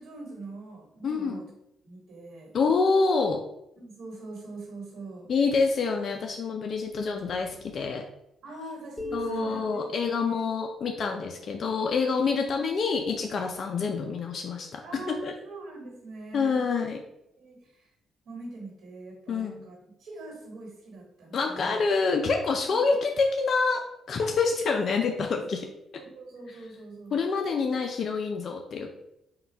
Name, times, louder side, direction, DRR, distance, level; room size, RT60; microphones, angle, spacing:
voice 1, 0.0-1.4 1.8-2.5 3.8-5.3 8.4-10.4 14.8-16.8 17.4-17.8 18.2-21.8 25.9-27.2, right 2 dB, 65° right, -1 dB, 1.4 m, -43 dB
voice 2, 1.0-1.4 2.5-3.4 5.3-8.0 9.1-15.3 16.3-17.0 19.3-19.6 21.3-25.7 27.1-28.9, left 4 dB, 55° left, 3 dB, 0.4 m, -27 dB
sound 1, 9.0-12.5, right 1 dB, ahead, 0.8 m, -39 dB
Sigh, 9.1-9.8, right 10 dB, 90° right, 0.6 m, -42 dB
3.7 x 2.3 x 4.3 m, 0.82 s
cardioid pair, 90°, 0 cm